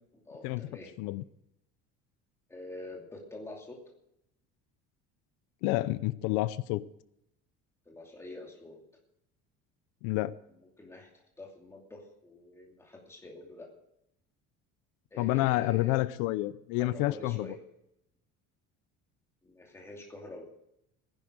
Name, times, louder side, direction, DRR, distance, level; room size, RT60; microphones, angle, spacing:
voice 1, 0.3-0.9 2.5-3.8 7.9-8.8 10.8-13.7 15.1-16.0 16.8-17.5 19.4-20.5, left 2 dB, 10° left, 0 dB, 2.6 m, -46 dB
voice 2, 5.6-6.8 10.0-10.3 15.2-17.5, left 17 dB, 90° left, 16 dB, 0.7 m, -29 dB
15.5 x 11.0 x 6.7 m, 0.81 s
cardioid pair, 180°, 31 cm